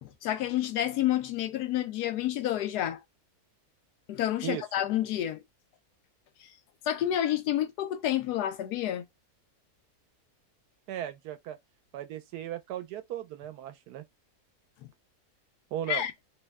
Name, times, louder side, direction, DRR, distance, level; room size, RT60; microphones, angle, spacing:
voice 1, 0.0-3.0 4.1-5.4 6.9-9.0 15.9-16.1, left 12 dB, 85° left, 1.1 m, -29 dB
voice 2, 10.9-11.6 11.9-14.0 15.7-16.1, right 11 dB, 85° right, 1.1 m, -36 dB
3.0 x 2.1 x 3.4 m
omnidirectional pair, 1.7 m